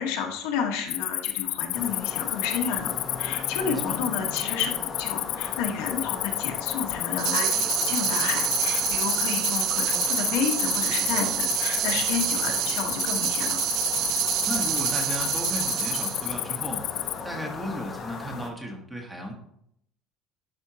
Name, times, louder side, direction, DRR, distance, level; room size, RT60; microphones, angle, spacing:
voice 1, 0.0-13.6, left 6 dB, 85° left, 2 dB, 1.4 m, -31 dB
Cricket, 0.9-17.2, left 18 dB, 70° left, 0.3 m, -31 dB
sound 1, 1.7-18.5, left 4 dB, 30° left, 0.9 m, -38 dB
voice 2, 3.6-4.0 14.4-16.8 17.2-19.3, equal, 5° right, 1 dB, 1.2 m, -35 dB
sound 2, 7.2-16.3, right 12 dB, 55° right, 0.4 m, -27 dB
11.0 x 4.3 x 2.9 m, 0.71 s
cardioid pair, 160°, 0 cm